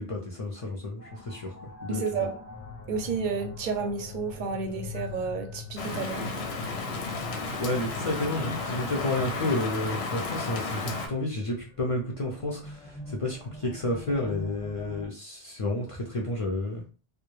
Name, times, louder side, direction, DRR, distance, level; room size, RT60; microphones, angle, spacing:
voice 1, 0.0-1.5 1.8-2.0 6.8-6.9 7.6-16.8, left 2 dB, 45° left, -1 dB, 0.4 m, -31 dB
sound 1, 1.0-15.1, left 4 dB, 15° left, 0.8 m, -44 dB
voice 2, 1.9-2.3 2.9-6.3, right 5 dB, 60° right, 4 dB, 0.6 m, -31 dB
Rain, 5.8-11.1, left 3 dB, 90° left, 0.8 m, -33 dB
2.2 x 2.1 x 3.0 m, 0.36 s
omnidirectional pair, 1.0 m